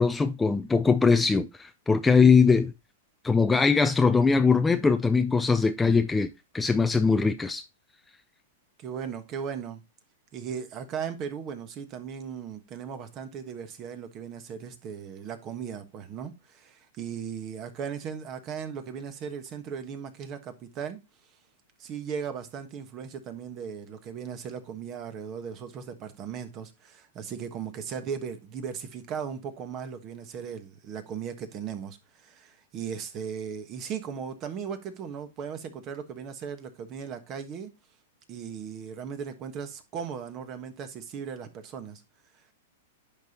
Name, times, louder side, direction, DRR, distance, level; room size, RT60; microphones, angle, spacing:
voice 1, 0.0-2.7 3.2-6.3 6.5-7.6, left 5 dB, 10° left, 0.4 m, -21 dB
voice 2, 8.8-9.8 10.3-21.0 21.8-37.7 38.3-42.0, right 7 dB, 30° right, 1.3 m, -37 dB
10.5 x 5.2 x 2.9 m
hypercardioid pair, 150°, 0 cm